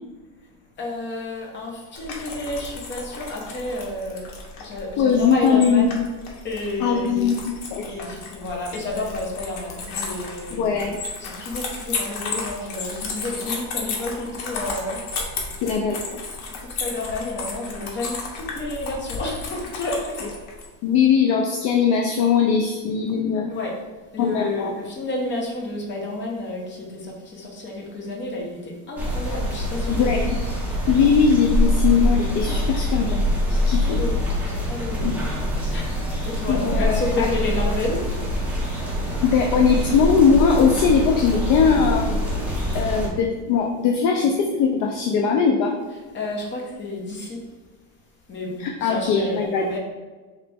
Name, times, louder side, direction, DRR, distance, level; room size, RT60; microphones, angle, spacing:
voice 1, 0.8-4.2 4.6-6.0 6.4-7.2 7.9-10.7 11.2-15.0 16.6-20.3 23.5-23.7 24.1-30.4 33.8-34.2 34.4-35.1 35.7-36.0 36.2-38.0 46.1-47.4 48.3-49.8, left 2 dB, 30° left, -1 dB, 0.9 m, -30 dB
sound 1, 1.9-20.7, left 4 dB, 75° left, 1.0 m, -33 dB
voice 2, 5.0-6.0 6.8-7.8 10.5-11.0 15.6-16.2 20.8-23.5 24.2-24.7 29.9-30.4 30.9-33.2 33.5-34.0 35.0-35.2 36.5-37.3 39.2-42.4 42.7-45.7 48.6-49.7, left 6 dB, 50° left, 1 dB, 0.5 m, -20 dB
sound 2, 29.0-43.1, equal, 5° right, 0.7 m, -24 dB
4.1 x 3.0 x 3.4 m, 1.3 s
cardioid pair, 145°, 38 cm